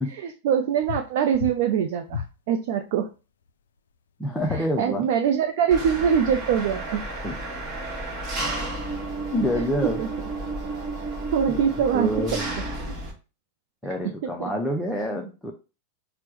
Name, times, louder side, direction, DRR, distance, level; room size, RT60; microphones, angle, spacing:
voice 1, 0.1-3.1 4.5-7.0 9.5-10.1 11.3-12.1 14.4-14.5, right 8 dB, 50° right, 5 dB, 0.4 m, -23 dB
sound 1, 0.8-1.1 1.3-1.6 2.1-2.3 4.4-4.7, left 8 dB, 65° left, 0.3 m, -32 dB
voice 2, 4.2-5.1 7.2-7.4 9.3-10.0 11.5-11.6 11.9-12.5 13.8-15.5, equal, 5° left, 0 dB, 0.6 m, -27 dB
Engine, 5.7-13.1, right 2 dB, 25° right, 1.1 m, -32 dB
4.4 x 2.0 x 4.5 m, 0.32 s
figure-of-eight pair, 90°, 0 cm